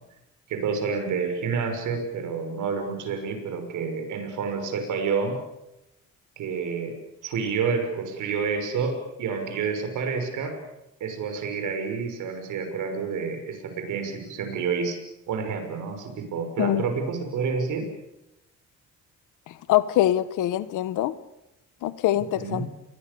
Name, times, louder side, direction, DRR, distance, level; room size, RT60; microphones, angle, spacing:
voice 1, 0.5-5.4 6.4-7.0 7.2-10.6 11.0-15.0 15.3-17.9 22.4-22.7, right 5 dB, 80° right, 6 dB, 6.2 m, -29 dB
voice 2, 19.7-21.1 21.8-22.7, left 13 dB, 90° left, 15 dB, 1.3 m, -23 dB
29.5 x 22.5 x 7.0 m, 0.91 s
cardioid pair, 90°, 30 cm